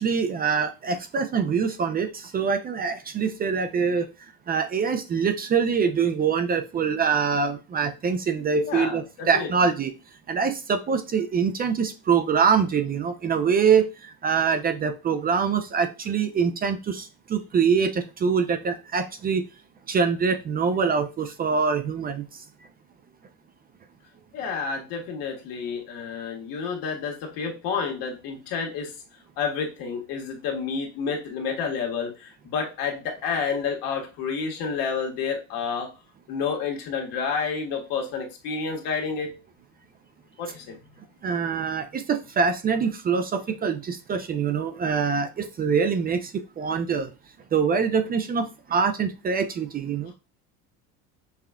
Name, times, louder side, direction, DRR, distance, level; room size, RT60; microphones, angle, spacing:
voice 1, 0.0-9.9 10.3-19.4 19.9-22.4 41.2-47.1 47.5-50.1, right 6 dB, 25° right, 0.4 m, -24 dB
voice 2, 8.6-9.5 24.3-28.9 29.4-35.9 36.3-39.4 40.4-40.8, left 5 dB, 70° left, 1.4 m, -30 dB
5.6 x 2.3 x 2.2 m
supercardioid pair, 105°, 35 cm